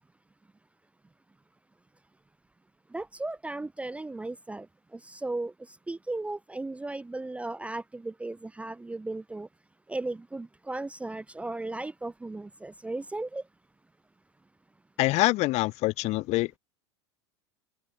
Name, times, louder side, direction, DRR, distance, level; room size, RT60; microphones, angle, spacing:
voice 1, 2.9-4.7 4.9-9.5 9.9-13.4, right 2 dB, 10° right, 0.5 m, -36 dB
voice 2, 15.0-16.6, left 20 dB, 50° left, 0.9 m, -25 dB
hypercardioid pair, 95°, 15 cm